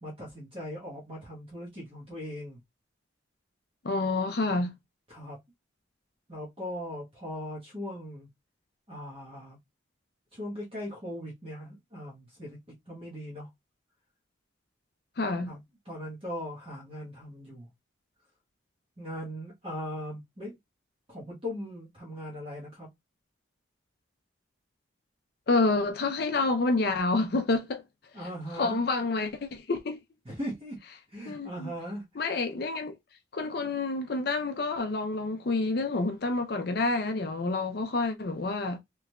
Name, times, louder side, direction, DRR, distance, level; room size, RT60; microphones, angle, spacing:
voice 1, 0.0-2.6 5.1-5.4 6.3-8.3 8.9-9.6 10.3-12.6 12.9-13.5 15.5-15.6 15.8-17.7 19.0-20.6 21.1-22.9 28.1-28.8 30.2-30.8 31.1-32.2, equal, 30° right, 1.1 m, -39 dB
voice 2, 3.8-4.7 15.2-15.5 25.5-27.8 28.6-30.0 31.3-31.7 32.2-33.0 33.3-38.8, left 3 dB, 50° left, 0.5 m, -28 dB
3.6 x 3.0 x 2.2 m
head